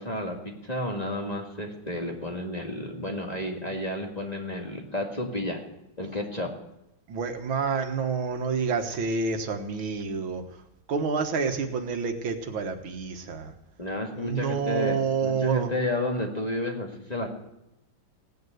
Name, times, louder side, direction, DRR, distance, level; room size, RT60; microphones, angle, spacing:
voice 1, 0.0-5.6 6.0-6.5 13.8-17.3, left 1 dB, 20° left, 1 dB, 2.0 m, -31 dB
voice 2, 7.1-10.6 10.9-13.5 14.1-15.7, right 5 dB, 90° right, 6 dB, 2.2 m, -28 dB
17.5 x 9.6 x 8.0 m, 0.89 s
omnidirectional pair, 2.1 m